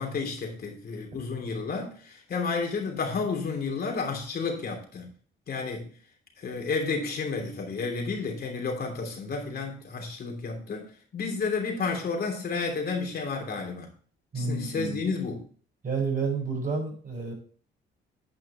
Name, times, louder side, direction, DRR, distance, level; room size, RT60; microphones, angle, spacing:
voice 1, 0.0-5.1 5.5-5.9 6.4-13.9 14.3-15.5, left 4 dB, 50° left, 2 dB, 3.1 m, -31 dB
voice 2, 14.3-15.0 15.8-17.3, right 4 dB, 45° right, -1 dB, 5.1 m, -30 dB
9.5 x 5.4 x 4.4 m, 0.43 s
cardioid pair, 90°, 20 cm